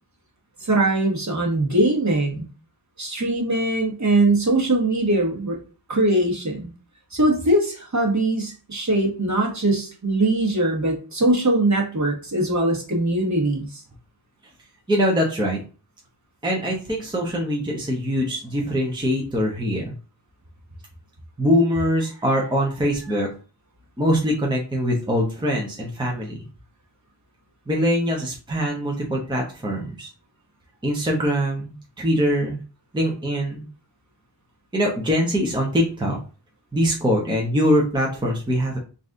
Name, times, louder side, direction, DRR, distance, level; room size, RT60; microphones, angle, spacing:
voice 1, 0.6-2.5 3.0-5.5 5.9-6.7 7.1-13.8, right 2 dB, 40° right, -1 dB, 1.3 m, -21 dB
voice 2, 14.9-15.6 16.4-19.9 21.4-23.3 24.0-26.4 27.7-30.1 30.8-32.6 32.9-33.7 34.7-36.2 36.7-38.8, equal, 10° right, -1 dB, 0.7 m, -23 dB
3.9 x 2.6 x 3.7 m, 0.36 s
wide cardioid pair, 110°, 46 cm